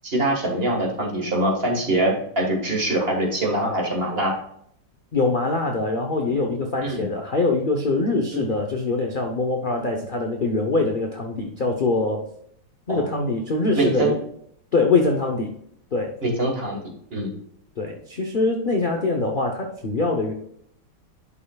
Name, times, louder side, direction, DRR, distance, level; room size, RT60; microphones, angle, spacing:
voice 1, 0.0-4.3 6.8-7.1 8.3-8.4 12.9-13.1 13.8-14.1 16.2-17.3, right 1 dB, 35° right, 0 dB, 1.6 m, -24 dB
voice 2, 5.1-12.2 12.9-14.2 14.7-15.5 15.9-16.2 17.8-20.3, left 3 dB, 65° left, 2 dB, 0.5 m, -23 dB
11.0 x 5.5 x 2.3 m, 0.69 s
omnidirectional pair, 2.0 m